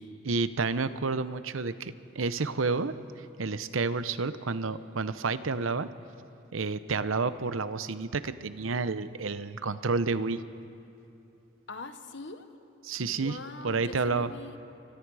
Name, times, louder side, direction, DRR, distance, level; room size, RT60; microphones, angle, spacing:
voice 1, 0.2-5.9 6.5-10.4 12.8-13.4 13.6-14.3, right 4 dB, 85° right, 13 dB, 0.8 m, -30 dB
voice 2, 11.7-12.5 12.9-14.6, left 3 dB, 60° left, 9 dB, 1.2 m, -43 dB
28.5 x 24.0 x 4.8 m, 2.8 s
head